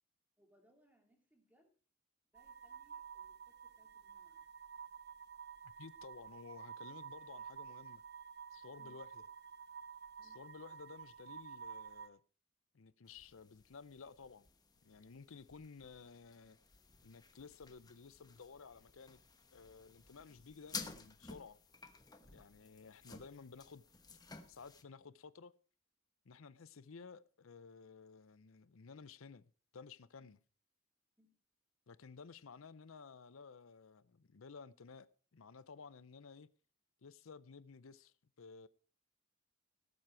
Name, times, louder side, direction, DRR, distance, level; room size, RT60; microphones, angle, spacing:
voice 1, 0.4-1.8 2.3-4.5 8.8-9.0 10.2-10.4 22.2-22.3 31.2-31.3, equal, 10° right, 2.8 m, -72 dB
sound 1, 2.3-12.1, right 7 dB, 50° right, 0.7 m, -51 dB
voice 2, 5.6-8.0 8.5-9.2 10.2-12.2 12.7-14.5 14.8-16.6 17.0-19.2 19.5-21.6 22.3-23.8 24.5-25.5 26.2-30.4 31.9-36.5 37.0-38.7, left 5 dB, 70° left, 0.6 m, -55 dB
sound 2, 13.1-24.8, left 4 dB, 20° left, 1.1 m, -54 dB
17.5 x 7.6 x 4.6 m
head